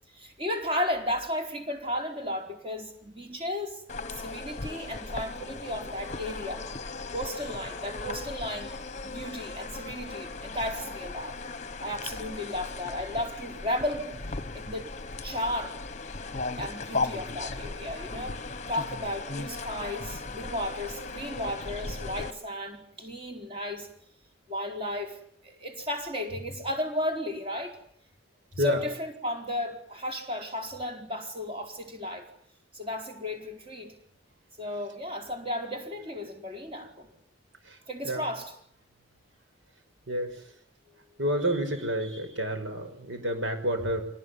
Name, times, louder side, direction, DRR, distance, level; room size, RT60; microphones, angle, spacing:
voice 1, 0.1-3.8 4.1-6.7 7.1-8.8 9.0-11.4 11.8-14.1 14.5-14.9 15.2-15.8 16.5-18.4 18.7-23.9 24.5-27.8 28.6-32.3 32.7-34.0 34.6-37.1 37.9-38.5, left 1 dB, 30° right, 3 dB, 4.4 m, -34 dB
sound 1, 3.9-22.3, left 3 dB, 35° left, 1.1 m, -37 dB
voice 2, 40.1-40.4 41.2-44.1, right 1 dB, 70° right, 7 dB, 5.6 m, -29 dB
25.5 x 19.0 x 9.7 m, 0.67 s
head